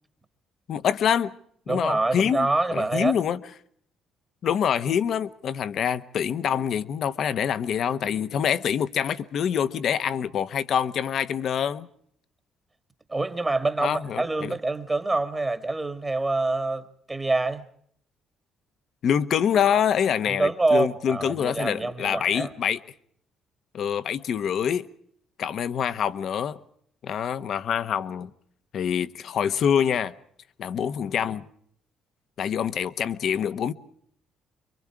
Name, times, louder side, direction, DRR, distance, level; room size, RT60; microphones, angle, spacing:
voice 1, 0.7-1.3 1.7-3.4 4.4-11.9 13.8-14.5 19.0-22.8 23.7-24.9 25.4-26.6 27.0-28.3 28.7-30.1 30.6-31.5 32.4-33.7, left 8 dB, 60° left, 1.1 m, -25 dB
voice 2, 1.7-3.2 13.1-17.6 20.3-22.5, right 2 dB, 20° right, 1.6 m, -26 dB
26.5 x 23.5 x 4.7 m
cardioid pair, 85°, 0 cm